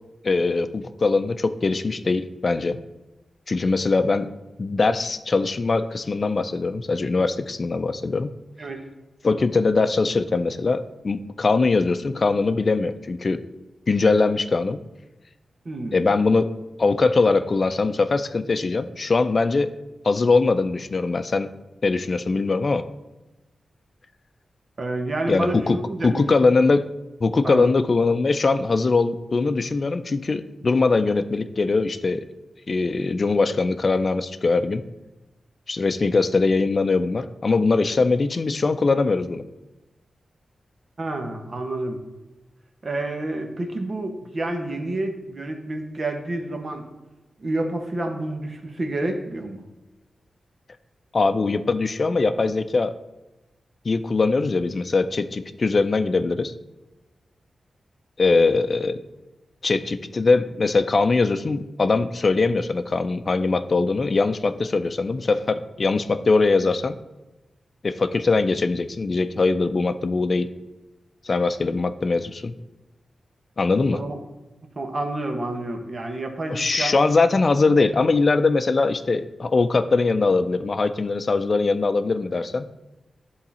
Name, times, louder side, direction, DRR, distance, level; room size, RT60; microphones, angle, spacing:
voice 1, 0.2-2.8 3.5-4.3 4.6-8.3 9.2-13.4 13.9-14.8 15.9-16.5 16.8-19.7 20.0-21.5 21.8-22.8 25.3-25.8 26.0-26.9 27.2-32.2 32.7-34.8 35.7-39.4 51.1-52.9 53.8-56.5 58.2-59.0 59.6-66.9 67.8-70.5 71.2-72.5 73.6-74.0 76.5-82.6, left 3 dB, 50° left, 10 dB, 0.4 m, -21 dB
voice 2, 15.6-16.0 24.8-26.2 27.4-27.7 41.0-42.0 42.8-46.8 47.4-49.6 73.9-74.2 74.7-77.1, right 2 dB, 55° right, 4 dB, 1.3 m, -29 dB
10.5 x 3.9 x 4.3 m, 1.0 s
cardioid pair, 45°, 0 cm